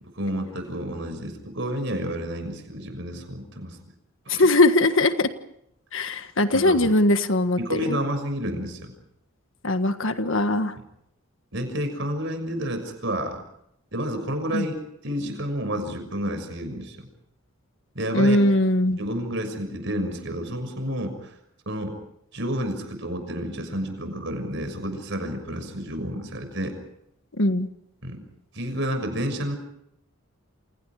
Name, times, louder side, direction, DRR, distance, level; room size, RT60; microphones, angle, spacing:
voice 1, 0.1-3.8 4.3-4.5 6.5-6.9 7.6-8.9 11.5-13.4 13.9-17.1 17.9-18.4 19.0-21.3 21.7-21.9 22.3-26.7 28.0-28.2 28.5-29.6, equal, 55° right, 7 dB, 6.4 m, -30 dB
voice 2, 4.3-5.3 5.9-8.0 9.6-10.7 14.5-14.7 18.1-19.0 27.4-27.7, left 2 dB, 65° left, 9 dB, 1.6 m, -20 dB
29.0 x 28.0 x 4.9 m, 0.77 s
head